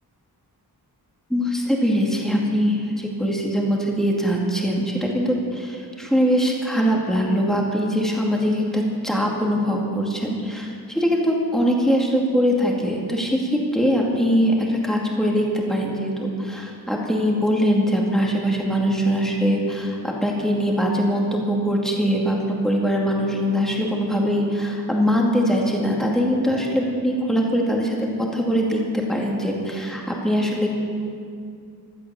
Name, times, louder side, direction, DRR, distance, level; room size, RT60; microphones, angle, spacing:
voice 1, 1.3-28.8 29.1-30.7, equal, ahead, -2 dB, 2.3 m, -22 dB
16.0 x 12.5 x 6.9 m, 2.3 s
wide cardioid pair, 135°, 39 cm